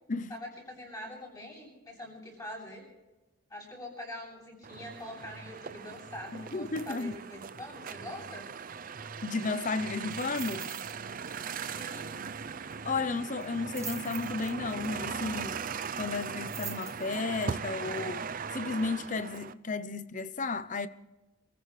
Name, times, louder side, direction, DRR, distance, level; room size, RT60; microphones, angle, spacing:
voice 1, 0.3-2.8 3.5-8.5 11.8-12.2, left 1 dB, 20° left, 7.9 m, -44 dB
sound 1, 4.6-19.5, right 6 dB, 45° right, 0.5 m, -39 dB
voice 2, 6.3-7.1 9.2-10.7 12.8-15.6 16.0-18.3 18.5-20.9, left 3 dB, 40° left, 0.7 m, -33 dB
sound 2, 10.1-11.0 11.2-11.5 11.8-11.9 13.4-14.9 16.1-17.4 18.0-18.1, right 6 dB, 15° right, 1.1 m, -44 dB
29.0 x 15.0 x 3.3 m
head